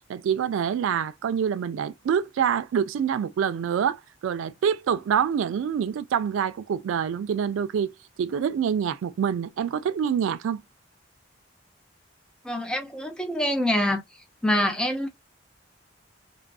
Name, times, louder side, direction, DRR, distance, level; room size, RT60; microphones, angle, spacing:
voice 1, 0.1-7.9 8.2-10.6, right 8 dB, 85° right, 0.3 m, -26 dB
voice 2, 12.4-14.0 14.4-15.1, left 1 dB, 5° left, 0.4 m, -25 dB
2.4 x 2.4 x 2.2 m
head